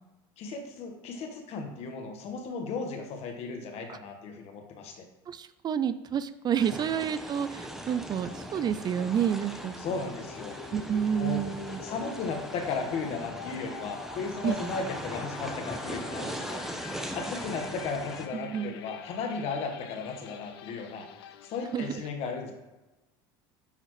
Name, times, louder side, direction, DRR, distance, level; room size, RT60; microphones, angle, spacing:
voice 1, 0.4-5.0 6.8-6.9 9.8-10.6 11.2-11.4 11.8-16.6 16.9-22.5, left 4 dB, 55° left, 4 dB, 1.5 m, -35 dB
voice 2, 5.3-9.8 10.7-11.8 14.4-14.6 18.3-18.7 21.7-21.9, right 8 dB, 35° right, 13 dB, 0.4 m, -29 dB
sound 1, 6.6-18.3, right 1 dB, 5° right, 0.9 m, -40 dB
sound 2, 8.3-22.0, left 10 dB, 90° left, 0.4 m, -46 dB
9.8 x 4.2 x 3.2 m, 1.1 s
supercardioid pair, 95°, 13 cm